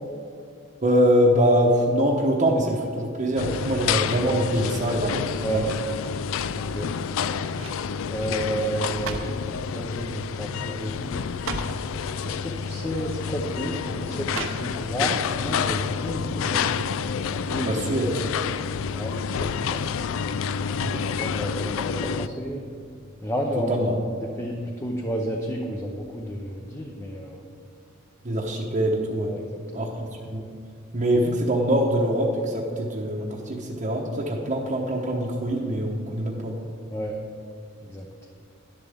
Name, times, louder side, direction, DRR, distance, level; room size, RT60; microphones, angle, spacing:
voice 1, 0.8-5.7 17.6-18.1 20.8-21.1 23.7-24.0 28.2-29.3 29.7-29.9 30.3-30.4 30.9-36.5, equal, 35° right, -3 dB, 1.0 m, -23 dB
sound 1, 3.4-22.3, left 6 dB, 70° left, 0.3 m, -29 dB
voice 2, 6.5-6.9 8.1-11.3 12.2-16.7 17.3-17.8 18.9-19.8 20.7-22.6 23.2-23.9 24.2-27.4 29.3-29.4 29.7-29.9 36.9-37.2 37.8-38.3, equal, 15° left, 0 dB, 0.7 m, -31 dB
sound 2, 6.8-7.1 7.5-7.9 8.7-9.5 10.3-10.5 10.8-10.9 11.3-11.9 12.8-12.9 14.3-15.0 15.4-15.5, right 4 dB, 75° right, 0.9 m, -36 dB
12.0 x 11.0 x 3.5 m, 2.3 s
head